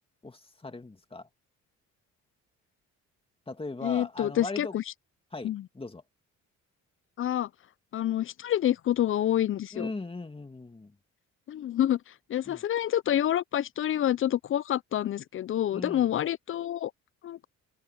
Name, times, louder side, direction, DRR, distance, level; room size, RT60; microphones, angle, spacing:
voice 1, 0.2-1.3 3.5-4.8 5.3-6.0 9.7-10.9 12.5-12.6 15.7-16.1, left 3 dB, 20° left, 2.4 m, -39 dB
voice 2, 3.8-4.8 5.4-5.7 7.2-7.5 7.9-9.9 11.5-12.0 12.3-16.9 17.2-17.5, left 11 dB, 45° left, 0.4 m, -28 dB
cardioid pair, 90°, 30 cm